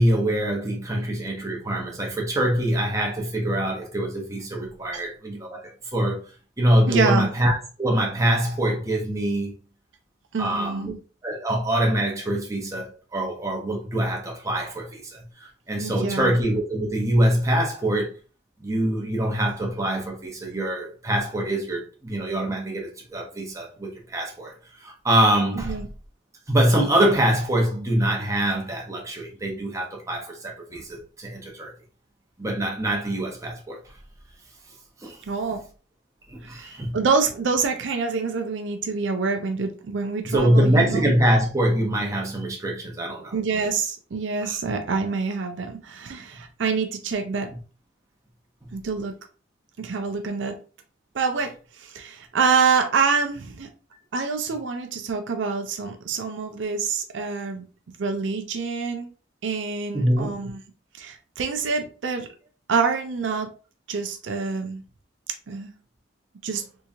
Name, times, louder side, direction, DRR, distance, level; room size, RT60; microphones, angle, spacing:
voice 1, 0.0-6.2 6.6-7.5 7.8-9.5 10.4-10.9 11.2-18.1 18.6-24.5 24.8-25.8 26.5-31.7 32.4-33.8 35.0-35.2 36.3-37.0 40.2-43.3 44.4-44.6 48.6-48.7 59.9-60.3, right 1 dB, 15° right, 0.8 m, -24 dB
voice 2, 6.9-7.3 10.3-11.0 15.8-16.4 25.5-25.9 35.3-35.6 36.5-41.0 43.3-47.5 48.7-49.1 49.8-50.6 51.1-53.7 54.1-57.6 58.0-59.1 59.4-60.6 61.0-62.3 62.7-63.5 63.9-64.8 65.5-65.7 66.4-66.7, right 5 dB, 75° right, 0.5 m, -26 dB
3.5 x 2.9 x 2.7 m
head